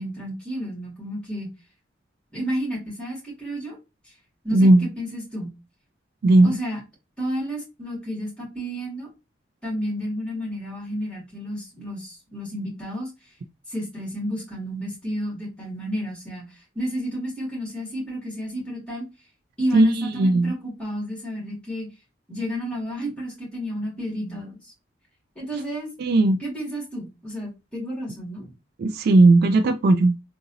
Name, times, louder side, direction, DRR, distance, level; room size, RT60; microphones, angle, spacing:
voice 1, 0.0-1.5 2.3-3.8 4.4-5.5 6.4-6.8 7.2-9.1 9.6-13.1 13.7-19.1 19.6-21.9 22.3-24.7 25.4-25.9 26.4-28.5, equal, 5° left, 2.2 m, -31 dB
voice 2, 4.5-4.9 6.2-6.6 19.7-20.5 26.0-26.4 28.8-30.2, right 2 dB, 55° right, 0.3 m, -17 dB
3.8 x 2.6 x 2.8 m
head